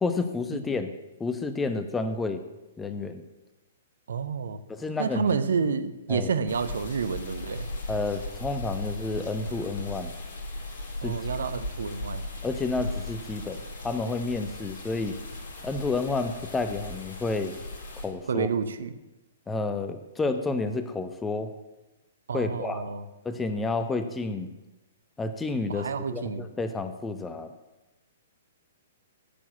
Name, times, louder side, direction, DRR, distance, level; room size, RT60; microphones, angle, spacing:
voice 1, 0.0-0.9 1.2-2.4 2.8-3.2 4.7-5.4 6.1-6.3 7.9-10.1 11.0-11.2 12.4-15.2 15.6-17.6 18.0-18.5 19.5-21.5 22.3-22.8 23.2-24.5 25.2-27.5, left 3 dB, 10° left, 9 dB, 0.9 m, -30 dB
voice 2, 4.1-4.6 5.0-7.7 11.0-12.2 18.3-18.9 22.3-23.0 25.7-26.4, right 6 dB, 65° right, 11 dB, 1.0 m, -29 dB
sound 1, 6.5-18.1, left 2 dB, 55° left, 3.3 m, -37 dB
10.0 x 7.3 x 9.3 m, 1.0 s
figure-of-eight pair, 115°, 0 cm